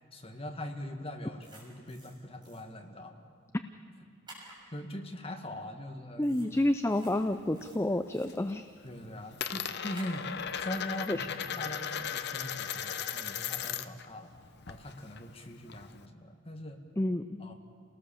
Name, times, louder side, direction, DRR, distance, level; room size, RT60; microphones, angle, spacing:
voice 1, 0.1-3.2 4.7-6.4 8.8-10.3 10.6-14.3 14.7-16.8 17.4-17.5, left 1 dB, 30° left, 3 dB, 2.0 m, -41 dB
sound 1, 1.4-2.1 2.4-2.6 4.3-4.6 6.2-6.5 6.8-7.1 7.5-8.3 9.9-10.2, right 2 dB, 20° right, 6.7 m, -52 dB
voice 2, 6.2-8.6 11.1-11.3 17.0-17.4, left 1 dB, 15° left, 9 dB, 0.5 m, -29 dB
Coin (dropping), 6.5-7.7 8.0-8.5 8.8-14.1 14.3-16.0, left 8 dB, 55° left, 0.8 m, -37 dB
29.0 x 18.5 x 7.1 m, 2.4 s
head